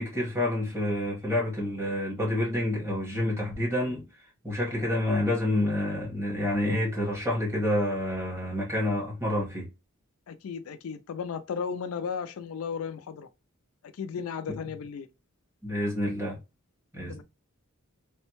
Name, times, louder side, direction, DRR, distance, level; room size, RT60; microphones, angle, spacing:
voice 1, 0.0-4.0 4.4-9.7 14.5-14.6 15.6-16.4 16.9-17.2, left 1 dB, 10° right, 1.5 m, -28 dB
voice 2, 10.3-13.3 13.9-15.1 17.1-17.2, left 6 dB, 85° left, 0.4 m, -35 dB
3.4 x 2.2 x 2.9 m
head